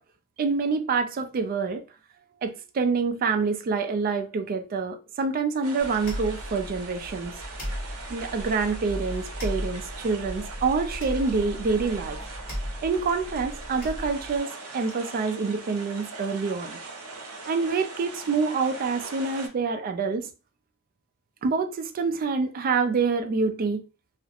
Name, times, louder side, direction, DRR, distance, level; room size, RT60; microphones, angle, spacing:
voice 1, 0.4-1.8 2.4-7.4 8.1-12.2 12.8-16.8 17.5-20.3 21.4-23.8, right 4 dB, 40° right, 0.3 m, -26 dB
sound 1, 5.6-19.5, right 3 dB, 70° right, 0.7 m, -41 dB
sound 2, 5.8-14.4, equal, 45° left, 1.1 m, -36 dB
2.4 x 2.0 x 2.7 m
head